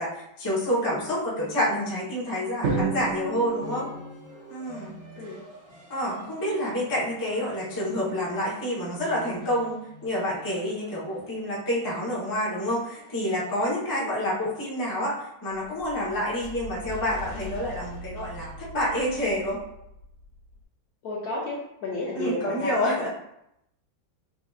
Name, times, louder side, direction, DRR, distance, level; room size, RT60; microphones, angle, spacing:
voice 1, 0.0-3.9 4.5-4.9 5.9-19.6 22.1-23.1, equal, 20° left, -6 dB, 0.6 m, -28 dB
voice 2, 0.7-1.0 3.6-4.0 5.2-5.4 13.9-14.1 21.0-23.1, left 1 dB, 65° left, -4 dB, 1.0 m, -33 dB
Drum, 2.6-4.8, right 4 dB, 65° right, 0.7 m, -31 dB
sound 1, 3.4-13.6, right 1 dB, 40° right, 1.2 m, -49 dB
sound 2, 15.5-20.6, left 1 dB, 85° left, 1.7 m, -42 dB
5.7 x 2.5 x 2.4 m, 0.81 s
omnidirectional pair, 2.1 m